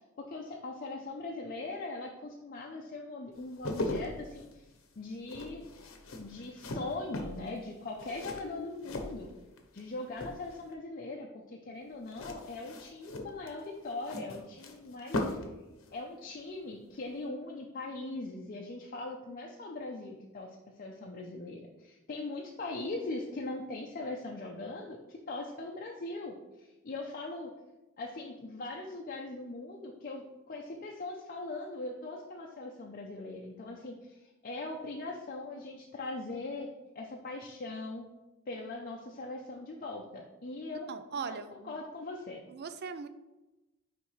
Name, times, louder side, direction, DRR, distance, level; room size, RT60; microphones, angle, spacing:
voice 1, 0.2-4.7 5.0-5.7 6.2-9.3 9.7-15.4 15.9-27.5 28.0-38.1 38.5-40.9 41.2-42.4, left 2 dB, 45° left, -1 dB, 0.6 m, -41 dB
sound 1, 3.4-9.8 10.1-10.7 12.1-15.6 15.8-16.0, left 1 dB, 70° left, 0.9 m, -39 dB
voice 2, 40.9-41.7 42.5-43.1, right 5 dB, 50° right, 11 dB, 0.4 m, -39 dB
9.4 x 3.4 x 3.1 m, 1.0 s
head